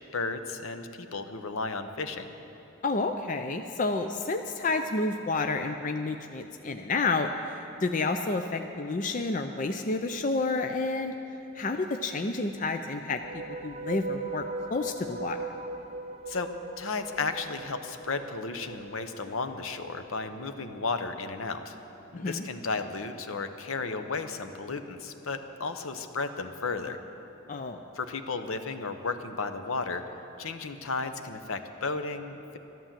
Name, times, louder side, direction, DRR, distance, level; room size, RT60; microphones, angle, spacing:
voice 1, 0.1-2.3 16.3-16.5 16.8-21.8 22.1-27.0 27.9-30.0 30.4-32.6, left 4 dB, 75° left, 8 dB, 0.8 m, -34 dB
voice 2, 2.8-11.2 11.6-13.2 13.6-14.5 14.7-15.4 22.1-22.4 27.5-27.8, left 3 dB, 35° left, 6 dB, 0.4 m, -30 dB
sound 1, 13.2-20.4, right 2 dB, 25° right, 0.7 m, -39 dB
12.5 x 11.5 x 7.4 m, 3.0 s
head